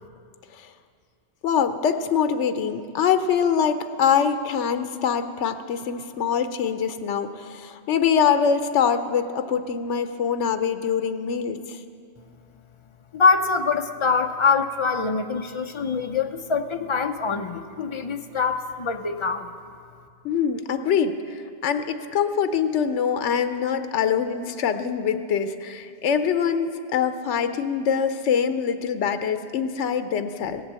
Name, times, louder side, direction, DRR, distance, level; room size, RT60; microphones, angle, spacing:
voice 1, 1.4-11.8 20.2-30.6, left 7 dB, 85° left, 9 dB, 1.0 m, -24 dB
voice 2, 13.1-19.5, left 5 dB, 40° left, 7 dB, 0.4 m, -24 dB
16.5 x 8.0 x 7.4 m, 2.4 s
omnidirectional pair, 1.2 m